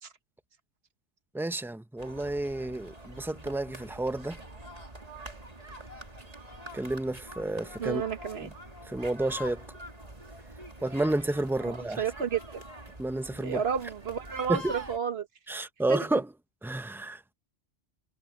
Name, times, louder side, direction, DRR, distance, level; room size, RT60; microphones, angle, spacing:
voice 1, 1.3-4.4 6.7-8.0 8.9-9.6 10.8-12.0 13.0-13.6 14.5-14.7 15.5-16.3 16.6-17.3, right 2 dB, 5° right, 0.3 m, -30 dB
sound 1, 2.0-15.0, right 1 dB, 35° right, 2.6 m, -45 dB
voice 2, 7.8-8.5 11.6-12.6 13.4-15.3 15.9-16.2, right 7 dB, 60° right, 1.5 m, -32 dB
omnidirectional pair, 1.2 m